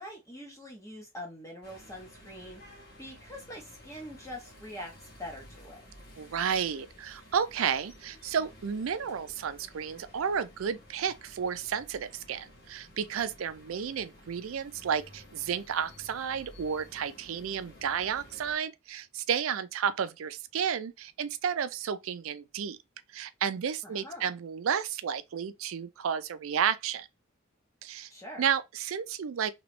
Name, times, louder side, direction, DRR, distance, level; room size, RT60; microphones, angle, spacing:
voice 1, 0.0-5.8 23.8-24.3 28.1-28.4, left 1 dB, 15° left, 0.7 m, -44 dB
sound 1, 1.6-18.6, equal, 45° left, 1.4 m, -53 dB
voice 2, 6.2-22.8 23.1-27.1 27.8-28.1 28.4-29.5, right 7 dB, 75° right, 0.4 m, -32 dB
3.0 x 2.9 x 3.0 m
head